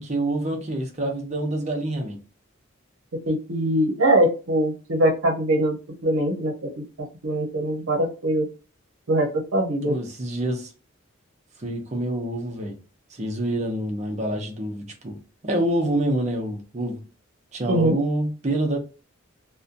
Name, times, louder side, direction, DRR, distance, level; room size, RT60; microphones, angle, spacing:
voice 1, 0.0-2.2 9.8-10.7 11.6-12.8 13.1-15.1 15.4-17.0 17.5-18.8, right 1 dB, 35° right, 0.6 m, -27 dB
voice 2, 3.3-8.5 9.1-10.0 17.7-18.0, right 1 dB, 75° right, 0.8 m, -23 dB
2.7 x 2.2 x 2.5 m
head